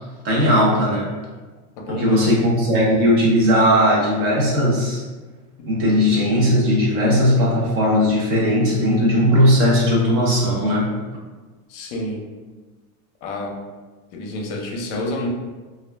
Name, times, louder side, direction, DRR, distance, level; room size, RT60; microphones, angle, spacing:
voice 1, 0.2-1.1 1.9-5.0 5.7-10.9, equal, 30° right, -4 dB, 0.5 m, -18 dB
voice 2, 1.8-2.4 5.6-5.7 11.7-12.3 13.2-13.6 14.1-15.3, left 1 dB, 55° left, 1 dB, 0.6 m, -28 dB
2.4 x 2.1 x 3.2 m, 1.3 s
supercardioid pair, 155°, 46 cm